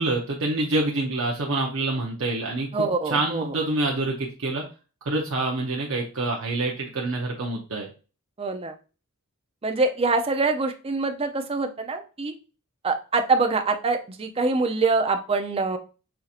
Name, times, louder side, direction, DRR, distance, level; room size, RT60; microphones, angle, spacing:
voice 1, 0.0-4.6 5.0-7.9, right 2 dB, 65° right, -1 dB, 0.7 m, -26 dB
voice 2, 2.7-3.5 8.4-8.7 9.6-12.3 12.8-15.8, right 3 dB, 25° right, 6 dB, 0.5 m, -24 dB
5.7 x 2.7 x 2.4 m, 0.34 s
head